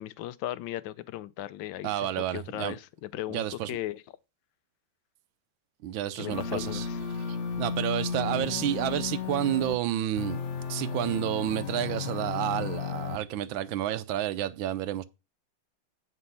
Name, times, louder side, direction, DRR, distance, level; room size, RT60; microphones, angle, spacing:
voice 1, 0.0-4.0 6.2-7.0, left 14 dB, 80° left, 1.3 m, -37 dB
voice 2, 1.8-2.8 3.3-3.7 5.8-6.9 7.3-10.4 10.7-15.1, right 12 dB, 80° right, 1.4 m, -30 dB
sound 1, 6.3-9.8 10.2-13.2, left 6 dB, 60° left, 0.8 m, -34 dB
8.2 x 5.3 x 5.6 m
omnidirectional pair, 2.1 m